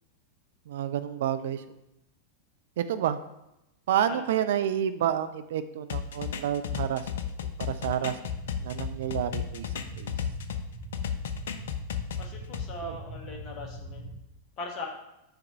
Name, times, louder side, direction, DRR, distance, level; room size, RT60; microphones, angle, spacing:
voice 1, 0.7-1.8 2.8-3.2 3.9-7.3 7.6-8.2 8.6-10.1 12.8-13.0, right 10 dB, 55° right, 11 dB, 0.3 m, -29 dB
sound 1, 5.9-10.6 10.9-12.7, left 8 dB, 60° left, 0.4 m, -33 dB
sound 2, 8.2-14.2, equal, 85° right, 1.3 m, -42 dB
voice 2, 12.2-14.1 14.6-14.9, left 3 dB, 35° left, 1 dB, 1.3 m, -40 dB
6.8 x 3.5 x 5.4 m, 0.89 s
figure-of-eight pair, 90°, 0 cm